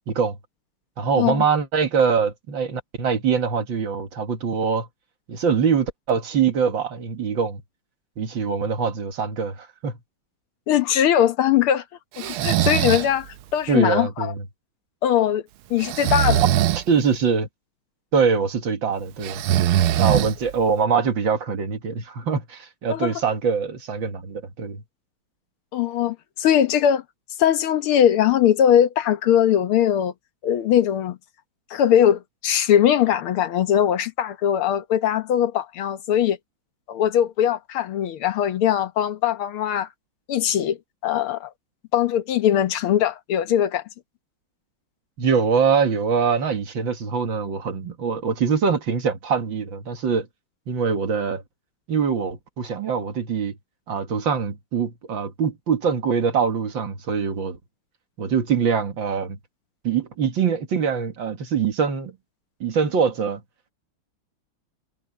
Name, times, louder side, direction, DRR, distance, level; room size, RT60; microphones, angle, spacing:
voice 1, 0.1-0.4 1.0-4.9 5.3-7.6 8.2-10.0 13.7-14.4 16.8-17.5 18.1-19.4 20.0-24.8 45.2-50.3 50.7-51.4 51.9-53.5 53.9-57.6 58.2-59.4 59.8-62.2 62.6-63.4, right 6 dB, 65° right, 2.5 m, -23 dB
voice 2, 10.7-11.8 12.2-14.3 15.0-15.4 15.7-16.4 22.9-23.1 25.7-27.0 27.4-30.1 30.4-31.2 31.7-36.4 36.9-39.9 40.3-40.8 41.0-41.5 41.9-43.8, left 10 dB, 85° left, 2.0 m, -20 dB
Breathing, 12.2-13.1 15.8-16.8 19.2-20.6, right 12 dB, 80° right, 1.6 m, -21 dB
omnidirectional pair, 2.3 m